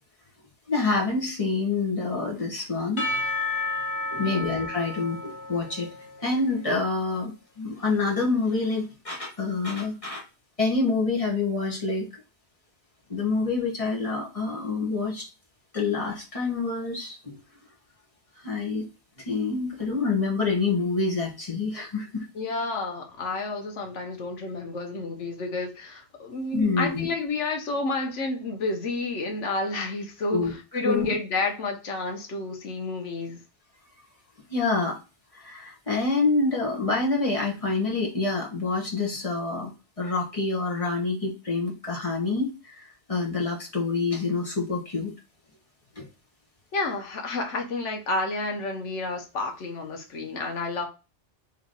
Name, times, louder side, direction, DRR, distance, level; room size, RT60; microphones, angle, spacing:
voice 1, 0.7-3.1 4.1-5.9 6.2-10.2 10.6-12.1 13.1-15.3 15.7-17.4 18.4-18.9 19.2-22.3 26.5-27.1 30.3-30.5 30.8-31.1 34.5-35.0 35.3-39.7 40.0-45.1 46.0-46.1, left 3 dB, 30° left, 1.1 m, -27 dB
Percussion / Church bell, 3.0-6.6, left 2 dB, 65° left, 1.2 m, -32 dB
voice 2, 22.3-30.4 30.7-33.4 46.7-50.9, left 3 dB, 90° left, 1.3 m, -30 dB
3.2 x 3.0 x 3.8 m
omnidirectional pair, 1.2 m